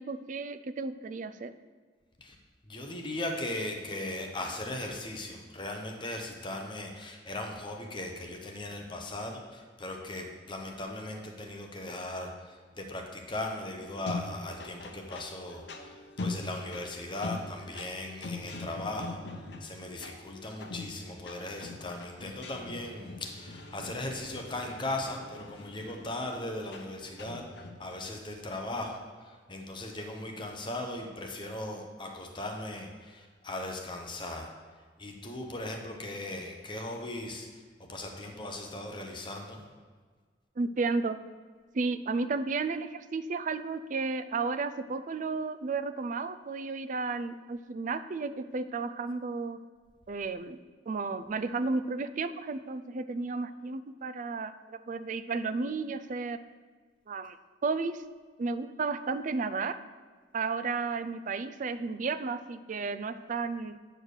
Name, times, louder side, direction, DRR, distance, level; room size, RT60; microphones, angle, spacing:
voice 1, 0.0-1.5 40.6-41.2 41.7-49.6 50.1-50.6 50.9-56.4 57.1-57.4 57.6-58.0 58.4-59.8 60.3-63.8, right 4 dB, 45° right, 12 dB, 0.4 m, -33 dB
voice 2, 2.7-29.0 29.2-34.5 35.0-37.5 37.9-39.6, left 1 dB, 25° left, 2 dB, 0.9 m, -38 dB
sound 1, 13.8-27.7, left 3 dB, 70° left, 0.9 m, -42 dB
9.0 x 4.5 x 6.6 m, 1.5 s
head